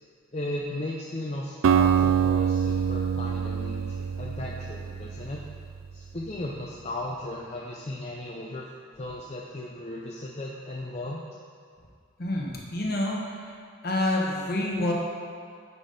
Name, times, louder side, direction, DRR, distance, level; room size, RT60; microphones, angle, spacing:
voice 1, 0.3-5.4 5.9-8.6 9.0-11.2, left 1 dB, 30° left, -3 dB, 0.5 m, -36 dB
Acoustic guitar, 1.6-5.7, right 7 dB, 75° right, 0.3 m, -25 dB
voice 2, 12.2-13.5 13.8-14.9, left 1 dB, 45° left, -2 dB, 1.2 m, -28 dB
9.6 x 4.1 x 5.1 m, 2.2 s
head